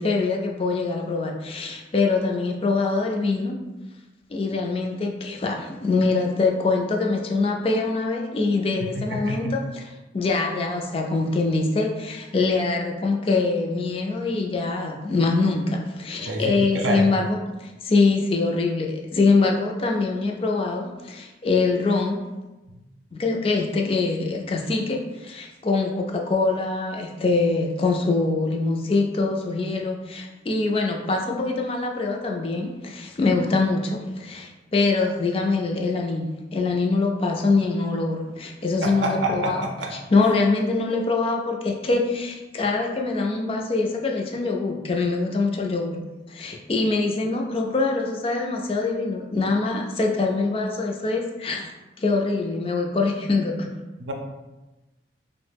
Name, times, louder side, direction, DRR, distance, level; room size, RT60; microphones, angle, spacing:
voice 1, 0.0-3.6 4.3-22.2 23.1-39.7 39.9-46.0 46.3-51.7 52.0-53.7, left 3 dB, 30° left, 1 dB, 0.3 m, -24 dB
voice 2, 8.9-9.5 16.2-17.1 38.8-39.9 54.0-54.1, right 1 dB, 90° right, 2 dB, 0.5 m, -27 dB
3.0 x 2.0 x 3.3 m, 1.1 s
head